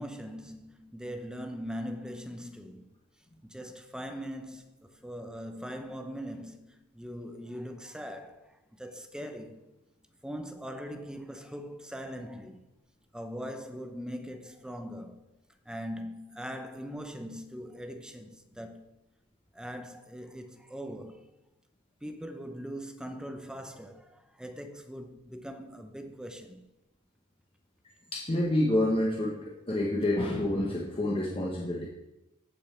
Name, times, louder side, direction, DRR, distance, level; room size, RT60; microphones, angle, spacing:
voice 1, 0.0-3.0 3.4-9.7 10.2-12.6 13.1-15.2 15.7-18.9 19.5-21.3 22.0-26.7, equal, 5° right, 0.8 m, -41 dB
voice 2, 28.1-31.9, left 1 dB, 25° left, 1.2 m, -28 dB
15.0 x 5.6 x 4.4 m
head